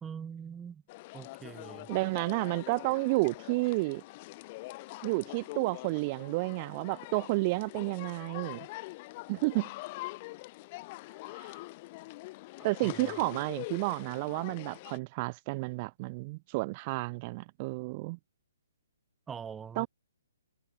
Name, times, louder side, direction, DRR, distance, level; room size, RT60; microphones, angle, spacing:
voice 1, 0.0-0.8 1.1-1.9 12.8-12.9 19.3-19.9, right 7 dB, 10° right, 1.0 m, -42 dB
sound 1, 0.9-15.0, left 21 dB, 30° left, 2.2 m, -44 dB
voice 2, 1.9-4.0 5.0-8.7 9.3-9.7 11.4-11.5 12.6-18.2 19.8-19.9, right 25 dB, 30° right, 0.3 m, -31 dB
hypercardioid pair, 150°, 0 cm